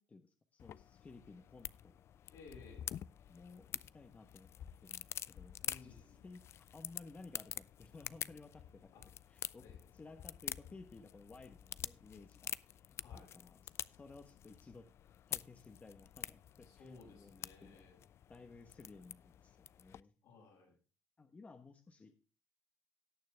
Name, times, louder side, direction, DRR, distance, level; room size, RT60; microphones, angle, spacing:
voice 1, 0.0-2.0 3.3-4.5 4.8-8.9 9.3-9.6 9.9-14.9 15.3-17.8 18.3-20.1 21.2-22.1, left 3 dB, 25° left, 6 dB, 1.2 m, -57 dB
sound 1, 0.6-20.0, left 10 dB, 55° left, 0.4 m, -48 dB
voice 2, 2.3-3.0 5.6-6.2 8.9-9.0 9.6-9.9 13.0-13.3 16.6-18.0 20.2-20.8, left 3 dB, 75° left, 0 dB, 6.7 m, -58 dB
17.5 x 6.7 x 3.4 m, 0.35 s
supercardioid pair, 90°, 5 cm